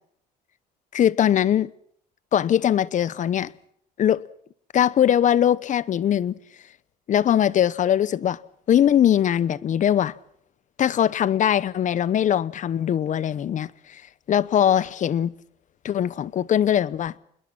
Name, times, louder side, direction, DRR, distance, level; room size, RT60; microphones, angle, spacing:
voice 1, 0.9-1.7 2.3-3.5 4.0-4.2 4.7-6.4 7.1-8.4 8.7-10.1 10.8-14.0 14.3-15.3 15.8-17.1, left 10 dB, 50° left, 0.9 m, -21 dB
27.0 x 21.5 x 5.9 m
cardioid pair, 110°, 17 cm